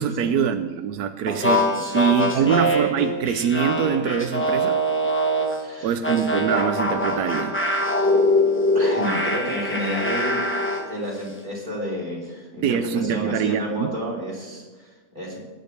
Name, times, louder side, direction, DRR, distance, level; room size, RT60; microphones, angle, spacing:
voice 1, 0.0-4.8 5.8-7.6 12.6-13.9, right 8 dB, 85° right, 9 dB, 1.2 m, -24 dB
sound 1, 1.3-5.6 6.0-10.9, left 1 dB, 10° left, 1.4 m, -23 dB
voice 2, 5.6-5.9 8.7-10.4 10.9-14.9 15.2-15.4, equal, 30° right, -4 dB, 3.5 m, -30 dB
20.0 x 9.4 x 3.4 m, 1.4 s
omnidirectional pair, 1.6 m